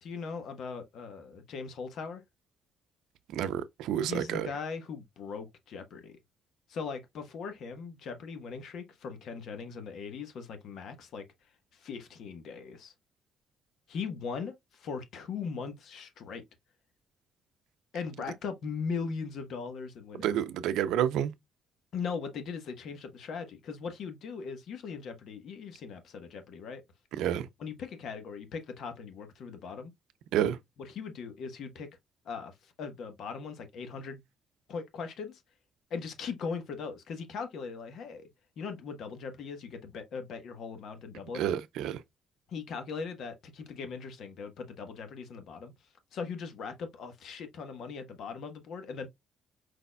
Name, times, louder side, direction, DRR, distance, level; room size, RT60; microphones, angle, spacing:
voice 1, 0.0-2.2 4.1-6.2 6.7-11.2 11.7-12.9 13.9-16.4 17.9-20.4 21.9-26.8 27.6-29.9 30.8-31.9 32.2-34.2 34.7-35.4 35.9-38.3 38.6-41.4 42.5-45.7 46.1-49.1, left 5 dB, 70° left, 1.1 m, -39 dB
voice 2, 3.3-4.5 20.2-21.3 27.2-27.4 30.3-30.6 41.3-42.0, right 10 dB, 90° right, 0.5 m, -29 dB
4.8 x 4.1 x 2.2 m
cardioid pair, 85°, 0 cm